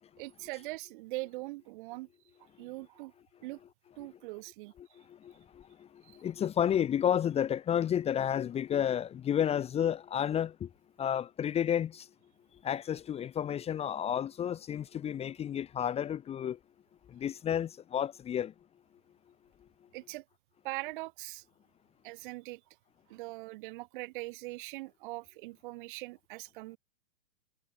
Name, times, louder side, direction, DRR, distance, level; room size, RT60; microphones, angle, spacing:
voice 1, 0.2-2.1 2.6-3.1 3.4-3.6 4.0-4.7 6.0-6.2 19.9-20.2 20.6-21.4 22.0-22.6 23.1-26.8, right 22 dB, 40° right, 2.8 m, -41 dB
voice 2, 5.1-5.9 6.1-10.7 11.0-12.1 12.6-16.6 17.1-18.5, left 9 dB, 15° left, 1.6 m, -31 dB
hypercardioid pair, 130°, 37 cm